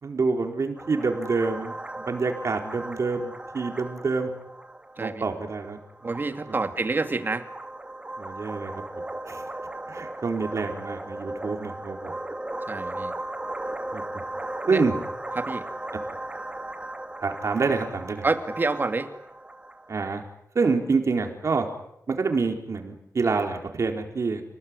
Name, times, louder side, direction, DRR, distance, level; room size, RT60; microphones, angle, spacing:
voice 1, 0.0-4.3 5.0-6.1 6.5-6.6 8.2-8.8 9.3-9.4 9.9-12.2 13.9-14.0 14.7-14.9 17.2-18.2 19.9-20.2 20.5-21.7 22.1-24.4, right 4 dB, 55° right, 4 dB, 4.3 m, -27 dB
sound 1, 0.8-20.1, right 1 dB, 20° right, 2.3 m, -37 dB
voice 2, 6.0-7.5 12.7-13.1 14.7-14.8 15.4-15.7 18.2-19.1, right 3 dB, 35° right, 7 dB, 2.5 m, -27 dB
29.5 x 20.0 x 9.8 m, 0.80 s
wide cardioid pair, 155°, 6 cm